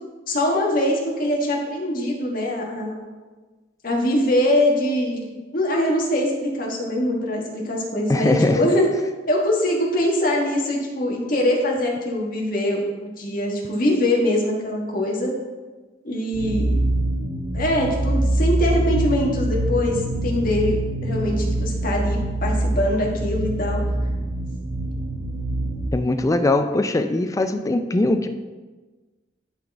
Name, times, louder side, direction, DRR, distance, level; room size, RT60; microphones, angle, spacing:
voice 1, 0.3-3.0 3.8-5.2 5.5-8.9 9.3-15.3 16.0-16.8 17.5-23.8, left 1 dB, 50° left, -2 dB, 1.5 m, -23 dB
voice 2, 8.1-8.6 25.9-28.3, left 2 dB, 20° left, 8 dB, 0.4 m, -20 dB
sound 1, 16.3-25.9, right 1 dB, 60° right, 0.7 m, -24 dB
10.5 x 4.1 x 3.5 m, 1.3 s
head